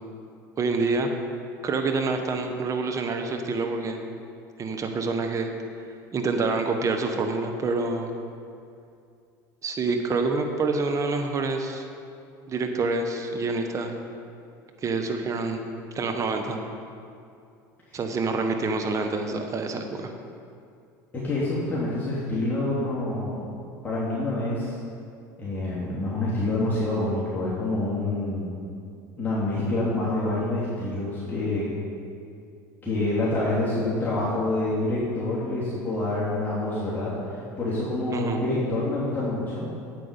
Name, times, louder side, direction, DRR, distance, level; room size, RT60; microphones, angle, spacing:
voice 1, 0.6-1.1 1.6-4.0 4.6-5.5 6.1-8.1 9.6-11.8 12.5-13.9 14.8-15.6 15.9-16.6 17.9-20.1 38.1-38.4, right 3 dB, 35° right, 4 dB, 1.2 m, -27 dB
voice 2, 21.2-23.5 23.8-24.7 25.4-28.5 29.2-31.7 32.8-39.7, left 2 dB, 20° left, -9 dB, 2.9 m, -27 dB
8.8 x 8.3 x 5.4 m, 2.4 s
hypercardioid pair, 80°, 10 cm